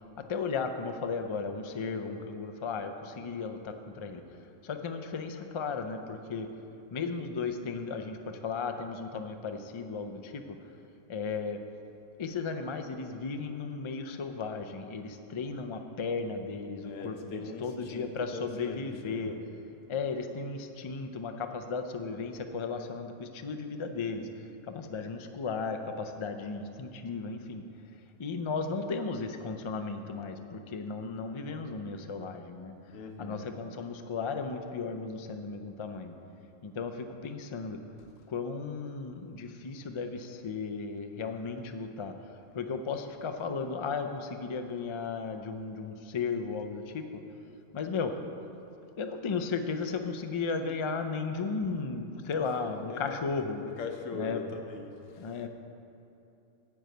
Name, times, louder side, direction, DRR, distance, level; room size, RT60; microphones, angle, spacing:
voice 1, 0.3-4.2 4.6-6.5 6.9-10.6 11.1-11.6 12.2-19.4 19.9-24.3 24.6-27.6 28.2-32.7 33.2-36.1 36.6-37.8 38.3-42.1 42.5-47.2 47.7-48.1 49.0-53.6 54.1-54.6 55.2-55.5, left 4 dB, 55° left, 6 dB, 0.3 m, -35 dB
voice 2, 16.8-19.4 32.9-33.5 52.9-53.2 53.6-55.4, left 5 dB, 80° left, 4 dB, 1.2 m, -41 dB
10.0 x 4.7 x 7.8 m, 2.9 s
omnidirectional pair, 1.3 m